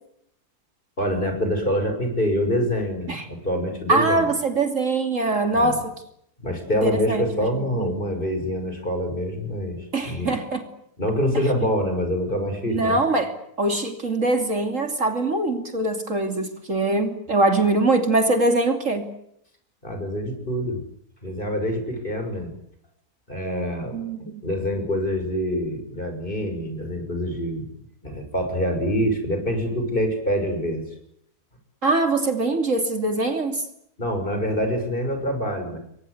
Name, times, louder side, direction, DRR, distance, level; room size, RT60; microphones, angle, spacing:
voice 1, 1.0-4.3 5.5-5.8 6.4-10.3 11.0-13.0 19.8-20.8 21.2-22.5 23.3-24.0 24.4-27.6 28.0-30.8 34.0-35.8, equal, 30° left, 6 dB, 6.6 m, -25 dB
voice 2, 3.9-5.9 6.8-7.2 7.5-7.9 9.9-10.6 12.7-13.3 13.6-19.1 23.9-24.4 31.8-33.6, right 2 dB, 50° right, 6 dB, 3.2 m, -23 dB
29.0 x 23.5 x 8.2 m, 0.74 s
omnidirectional pair, 1.7 m